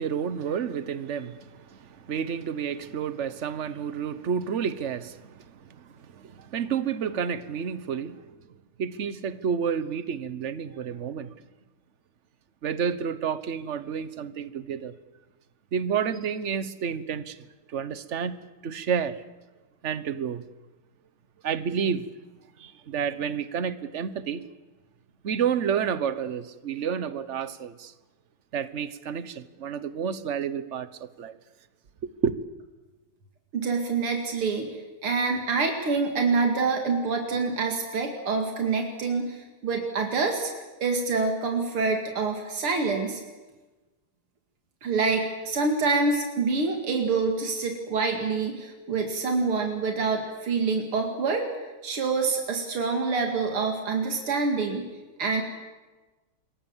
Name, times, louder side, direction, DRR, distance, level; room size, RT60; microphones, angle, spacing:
voice 1, 0.0-8.3 8.8-11.3 12.6-14.9 15.7-17.4 17.7-18.4 18.6-19.2 19.8-20.4 21.4-22.1 22.6-24.4 25.2-27.9 28.5-31.4 32.0-32.3, right 7 dB, 45° right, 1.1 m, -30 dB
voice 2, 33.5-40.5 40.8-43.2 44.8-51.5 51.8-54.9 55.2-55.4, right 4 dB, 90° right, 3.2 m, -26 dB
27.0 x 22.5 x 7.4 m
omnidirectional pair, 2.3 m